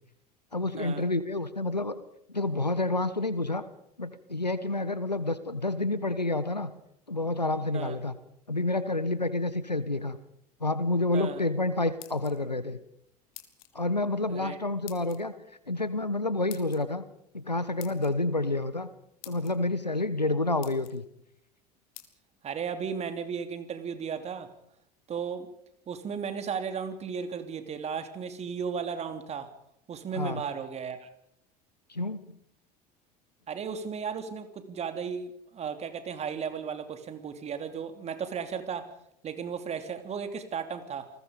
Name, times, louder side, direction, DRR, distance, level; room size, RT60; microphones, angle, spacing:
voice 1, 0.5-2.0 2.3-3.6 4.0-6.7 7.1-8.1 8.5-10.2 10.6-12.8 13.7-15.3 15.7-17.0 17.3-18.9 19.2-21.0 30.1-30.4 31.9-32.4, left 2 dB, 90° left, 14 dB, 1.4 m, -29 dB
sound 1, 12.0-12.6 13.3-13.7 14.9-15.2 16.5-16.8 17.8-18.1 18.8-18.9 19.2-19.5 20.2-20.3 20.6-21.0 21.9-22.1, left 15 dB, 60° left, 2.6 m, -47 dB
voice 2, 22.4-24.5 25.1-25.5 25.9-29.5 29.9-31.1 33.5-38.9 39.2-41.1, right 6 dB, 30° right, 8 dB, 3.1 m, -35 dB
29.0 x 20.5 x 5.3 m, 0.75 s
figure-of-eight pair, 70°, 21 cm